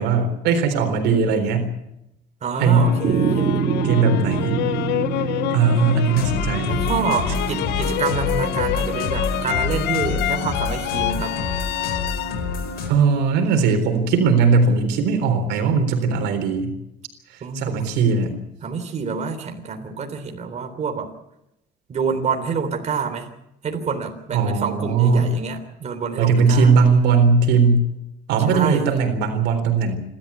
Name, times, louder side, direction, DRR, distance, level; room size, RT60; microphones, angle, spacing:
voice 1, 0.0-1.7 2.6-3.0 3.8-4.6 5.2-5.3 5.5-6.8 12.9-16.7 17.3-18.4 24.3-25.3 26.2-27.9 28.3-30.0, right 4 dB, 90° right, 6 dB, 3.8 m, -19 dB
voice 2, 2.4-3.6 6.6-11.4 17.4-17.9 18.6-21.1 21.9-23.3 23.6-26.7 28.5-28.9, right 5 dB, 40° right, 4 dB, 3.5 m, -27 dB
sound 1, 2.5-13.6, left 17 dB, 85° left, 0.7 m, -28 dB
sound 2, 3.0-9.5, right 6 dB, 65° right, 2.2 m, -26 dB
sound 3, 6.1-12.9, left 4 dB, 65° left, 4.8 m, -27 dB
28.5 x 13.0 x 8.4 m, 0.85 s
cardioid pair, 110°, 17 cm